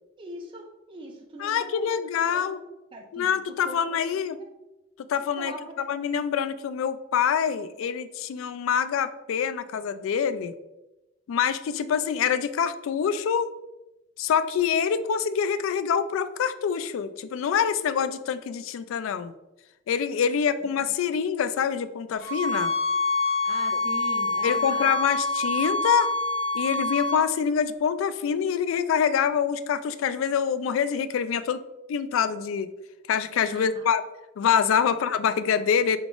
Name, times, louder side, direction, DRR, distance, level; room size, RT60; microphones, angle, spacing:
voice 1, 0.2-2.6 2.9-3.3 3.6-4.3 5.4-5.9 20.6-21.0 23.4-24.9 33.5-33.8 34.9-35.0, right 1 dB, 25° right, 1 dB, 0.4 m, -41 dB
voice 2, 1.4-2.6 3.1-4.4 5.1-10.5 11.3-13.5 14.2-19.3 19.9-22.7 24.4-26.1 26.5-31.6 31.9-32.7 33.1-34.0 34.4-36.0, left 7 dB, 80° left, 14 dB, 0.3 m, -25 dB
sound 1, 22.2-27.2, left 2 dB, 60° left, 1.0 m, -26 dB
3.9 x 3.4 x 3.7 m, 1.0 s
head